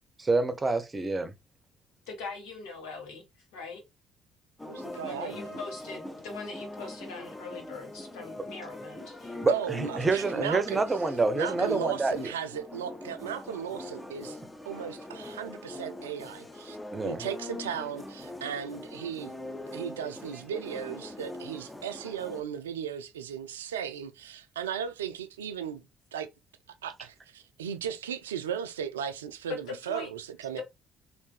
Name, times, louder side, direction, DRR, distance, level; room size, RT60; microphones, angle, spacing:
voice 1, 0.2-1.3 9.3-12.3 16.9-17.2, right 3 dB, 25° right, 0.7 m, -27 dB
voice 2, 2.1-3.2 3.5-3.8 4.9-9.4 29.5-30.1 30.6-30.7, left 4 dB, 70° left, 1.3 m, -41 dB
sound 1, 4.6-22.4, left 1 dB, 15° left, 0.7 m, -42 dB
voice 3, 4.7-5.6 9.5-10.8 11.3-14.4 14.7-16.8 17.0-19.3 19.7-25.8 26.1-26.3 26.8-30.6, right 8 dB, 80° right, 0.3 m, -36 dB
3.3 x 2.6 x 3.2 m
figure-of-eight pair, 50°, 0 cm